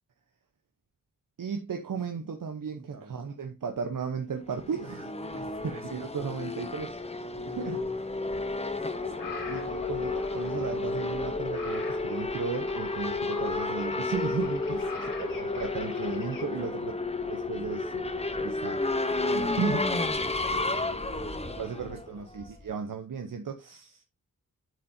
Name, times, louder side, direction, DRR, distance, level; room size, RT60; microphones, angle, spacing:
voice 1, 1.4-5.2 5.7-7.0 7.4-7.8 9.5-16.9 17.3-18.0 18.4-19.9 21.6-24.0, right 6 dB, 75° right, 0.9 m, -35 dB
voice 2, 2.7-3.1 5.2-6.1 7.3-8.0 8.7-9.8 14.9-15.1 16.6-16.7 18.3-18.8 20.1-22.6, right 2 dB, 55° right, 2.4 m, -50 dB
Race car auto racing / Accelerating revving vroom, 4.5-22.7, left 3 dB, 20° left, 0.9 m, -32 dB
sound 1, 8.4-16.5, left 4 dB, 80° left, 2.2 m, -43 dB
9.2 x 7.0 x 2.7 m
wide cardioid pair, 125°, 33 cm